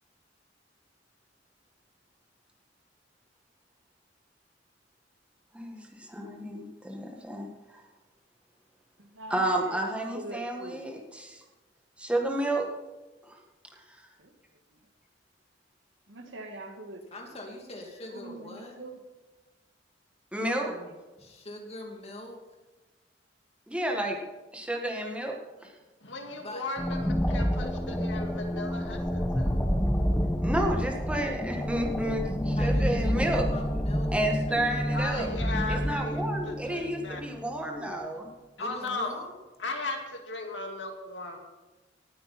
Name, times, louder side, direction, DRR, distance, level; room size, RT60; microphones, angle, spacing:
voice 1, 5.5-7.5 9.3-11.4 12.0-12.7 13.3-13.4 20.3-20.7 23.7-24.2 24.5-25.4 30.4-33.4 34.1-35.3 35.7-38.3, right 1 dB, 5° right, 1 dB, 1.8 m, -31 dB
voice 2, 9.0-10.8 14.2-14.3 16.1-17.0 18.1-18.9 20.5-21.0, right 2 dB, 80° right, 5 dB, 1.9 m, -43 dB
voice 3, 17.1-18.8 21.2-22.4 26.4-26.6 32.6-35.0 35.8-36.0 38.6-39.3, left 1 dB, 35° left, 1 dB, 2.7 m, -42 dB
voice 4, 26.0-29.6 34.9-37.2 38.0-38.1 38.6-39.1 39.6-41.4, left 3 dB, 70° left, 3 dB, 2.2 m, -37 dB
sound 1, 26.8-37.8, equal, 10° left, 1.2 m, -29 dB
19.0 x 8.9 x 4.4 m, 1.2 s
head